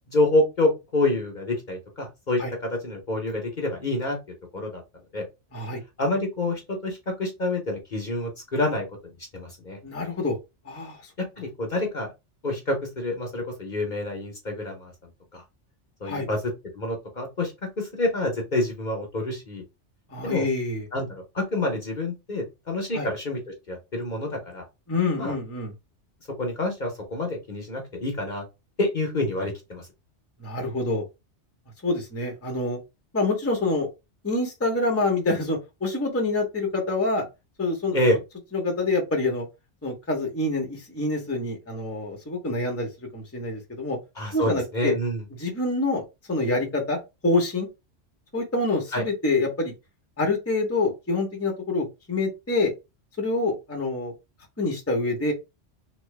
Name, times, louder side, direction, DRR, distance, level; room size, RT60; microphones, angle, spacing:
voice 1, 0.1-4.2 4.5-4.8 5.1-5.2 6.0-9.8 11.4-12.1 12.4-14.9 15.3-15.4 16.0-16.4 16.7-17.5 17.8-19.6 20.2-20.5 20.9-23.4 23.7-24.6 25.2-25.3 26.4-28.4 28.8-29.9 37.9-38.2 44.2-45.2 48.9-49.0, left 2 dB, 45° left, 1.0 m, -27 dB
voice 2, 9.8-10.3 10.7-11.0 16.0-16.3 20.1-20.9 22.9-23.1 24.9-25.7 30.4-31.0 31.8-32.8 33.1-33.9 34.2-37.2 37.6-38.0 38.5-39.4 39.8-44.0 44.3-44.9 45.4-47.0 47.2-47.7 48.3-49.7 50.2-52.7 53.2-54.1 54.6-55.3, left 2 dB, 15° left, 0.8 m, -26 dB
3.1 x 2.9 x 3.2 m
omnidirectional pair, 1.2 m